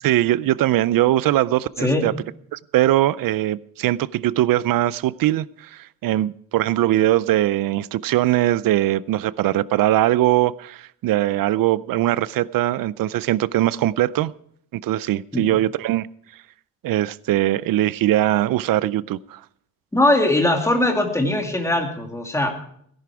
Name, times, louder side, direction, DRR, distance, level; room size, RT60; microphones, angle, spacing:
voice 1, 0.0-2.1 2.5-14.3 14.8-16.1 16.8-19.4, right 14 dB, 75° right, 20 dB, 0.5 m, -21 dB
voice 2, 19.9-22.5, left 1 dB, 10° left, 2 dB, 2.3 m, -20 dB
17.5 x 11.0 x 4.7 m, 0.65 s
cardioid pair, 135°, 34 cm